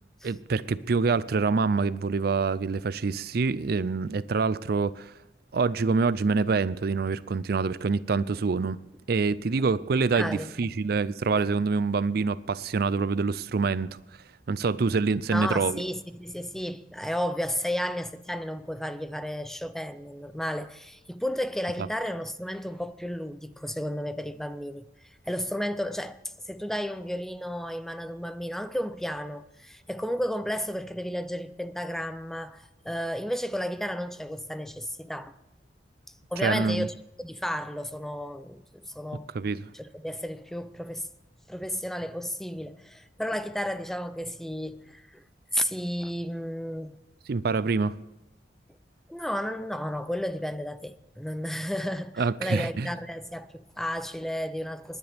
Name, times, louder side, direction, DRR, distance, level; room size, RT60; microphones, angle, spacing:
voice 1, 0.2-5.1 5.5-8.8 9.1-14.0 14.5-15.8 36.4-36.9 39.3-39.6 47.3-48.0 52.2-52.9, right 4 dB, 60° right, 0.5 m, -26 dB
voice 2, 10.1-10.9 11.3-11.4 15.3-24.8 25.3-26.2 26.5-35.4 36.3-41.1 41.5-45.2 45.5-47.0 49.1-55.0, equal, ahead, 0.5 m, -33 dB
29.0 x 10.5 x 3.5 m
head